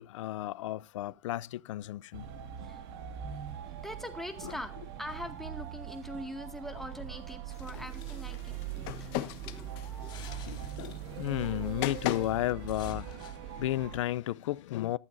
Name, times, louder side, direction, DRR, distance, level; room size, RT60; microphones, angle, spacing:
voice 1, 0.0-2.3 4.4-4.6 7.7-7.8 9.2-9.3 10.4-15.0, left 14 dB, 85° left, 0.5 m, -34 dB
sound 1, 2.1-14.0, right 9 dB, 55° right, 1.9 m, -41 dB
voice 2, 3.8-10.6 11.4-11.7, left 1 dB, ahead, 1.8 m, -43 dB
sound 2, 7.5-12.5, left 15 dB, 50° left, 1.1 m, -40 dB
sound 3, 8.0-11.4 12.0-12.4 12.7-13.4, left 7 dB, 30° left, 3.7 m, -53 dB
14.5 x 12.5 x 2.6 m
supercardioid pair, 145°, 15 cm